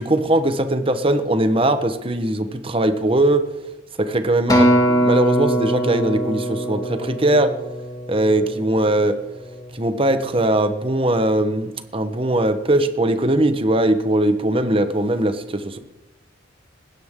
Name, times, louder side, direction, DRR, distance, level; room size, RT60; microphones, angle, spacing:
voice 1, 0.0-3.4 4.0-7.5 8.1-9.2 9.7-15.8, right 1 dB, 30° right, 10 dB, 1.0 m, -20 dB
Acoustic guitar, 4.5-8.9 9.6-9.7, right 1 dB, 20° left, 2.3 m, -21 dB
19.5 x 16.5 x 3.7 m, 0.98 s
head